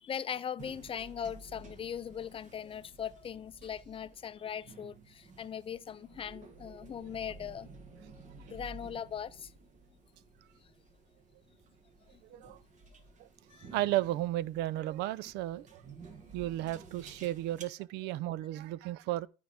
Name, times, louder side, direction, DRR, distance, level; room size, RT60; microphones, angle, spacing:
voice 1, 0.0-7.7 8.5-9.5 12.1-12.2 13.5-13.8, left 8 dB, 35° left, 0.4 m, -40 dB
sound 1, 0.6-17.6, right 4 dB, 45° right, 1.4 m, -53 dB
voice 2, 13.7-15.8 16.3-19.3, right 15 dB, 90° right, 0.4 m, -34 dB
12.5 x 4.5 x 3.5 m
cardioid pair, 110°, 17 cm